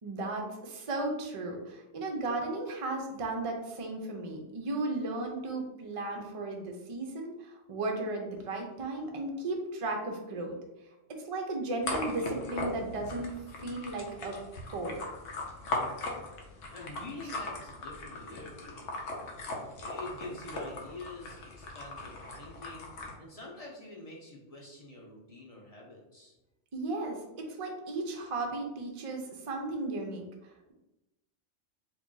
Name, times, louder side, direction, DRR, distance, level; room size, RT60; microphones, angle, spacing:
voice 1, 0.0-10.5 10.9-13.3 13.6-14.4 14.7-15.0 26.7-30.7, right 2 dB, 50° right, 2 dB, 0.4 m, -35 dB
sound 1, 11.8-23.1, left 2 dB, 85° left, 1.0 m, -39 dB
voice 2, 16.7-18.9 19.8-22.9 23.2-26.4, left 2 dB, 40° left, -3 dB, 0.6 m, -46 dB
3.0 x 2.5 x 3.7 m, 0.97 s
omnidirectional pair, 1.2 m